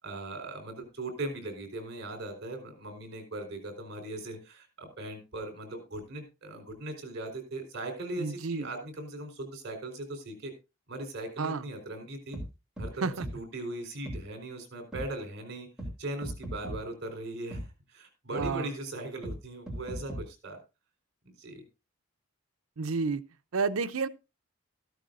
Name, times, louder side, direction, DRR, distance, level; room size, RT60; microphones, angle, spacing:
voice 1, 0.0-10.5 10.9-12.4 12.8-15.7 16.0-20.6 21.4-21.6, right 2 dB, 55° right, 3.9 m, -39 dB
voice 2, 8.2-8.7 11.4-11.6 13.0-13.3 18.3-18.7 22.8-23.2 23.5-24.1, right 4 dB, 80° right, 0.6 m, -30 dB
sound 1, 12.3-12.5 12.8-12.9 13.2-13.3 14.1-14.2 14.9-15.1 15.8-15.9 16.2-16.8 17.5-17.6 18.4-18.5 19.2-19.4 19.7-20.2, right 1 dB, 5° right, 3.1 m, -37 dB
14.0 x 12.5 x 2.5 m
head